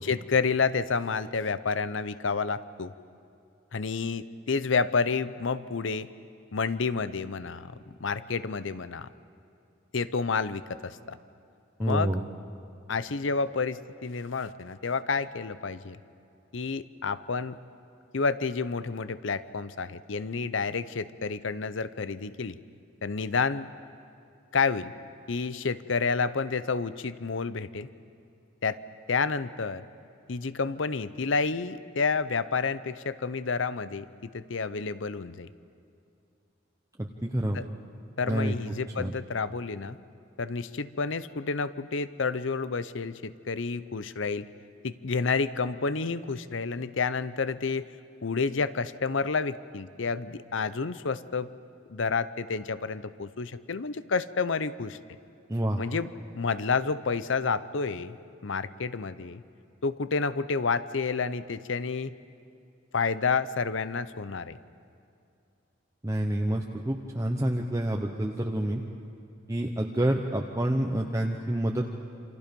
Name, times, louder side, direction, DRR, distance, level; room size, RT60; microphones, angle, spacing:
voice 1, 0.0-2.9 3.7-6.1 6.5-7.7 8.0-9.1 9.9-11.2 11.8-12.1 12.9-16.0 16.5-17.6 18.1-22.6 23.0-23.7 24.5-24.9 25.3-27.9 28.6-28.8 29.1-29.8 30.3-35.5 37.5-37.7 38.2-40.0 40.4-44.5 44.8-47.9 48.2-51.5 51.9-55.0 55.8-58.2 58.4-59.4 59.8-62.1 62.9-64.6, left 4 dB, 70° left, 15 dB, 0.7 m, -29 dB
voice 2, 11.8-12.2 37.0-37.6 38.3-38.5 39.0-39.1 55.5-55.8 66.0-68.8 69.5-72.0, right 1 dB, 15° right, 1 dB, 1.0 m, -28 dB
28.5 x 26.5 x 5.3 m, 2.5 s
head